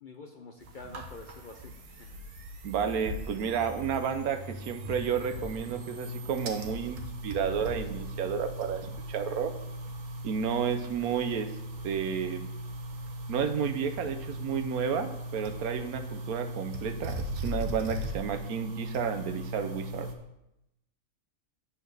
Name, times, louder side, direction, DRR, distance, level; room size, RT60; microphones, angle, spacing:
voice 1, 0.0-2.2, left 3 dB, 55° left, 3 dB, 0.6 m, -47 dB
sound 1, 0.6-20.1, equal, 65° right, 1.3 m, -38 dB
voice 2, 2.6-9.5 10.2-11.5 11.8-12.5 13.3-20.1, right 7 dB, 85° right, 9 dB, 1.2 m, -31 dB
8.5 x 4.2 x 6.7 m, 0.87 s
omnidirectional pair, 1.5 m